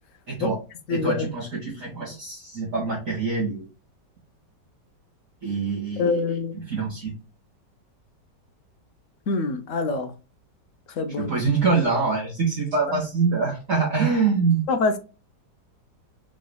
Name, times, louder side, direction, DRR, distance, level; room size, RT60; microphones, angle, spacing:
voice 1, 0.3-0.6 0.9-3.7 5.4-6.2 6.5-7.1 11.2-14.6, right 4 dB, 50° right, 2.1 m, -24 dB
voice 2, 0.9-1.3 6.0-6.5 9.3-10.1 11.0-11.3 14.7-15.0, left 3 dB, 60° left, 0.9 m, -24 dB
5.8 x 3.0 x 2.3 m
omnidirectional pair, 1.9 m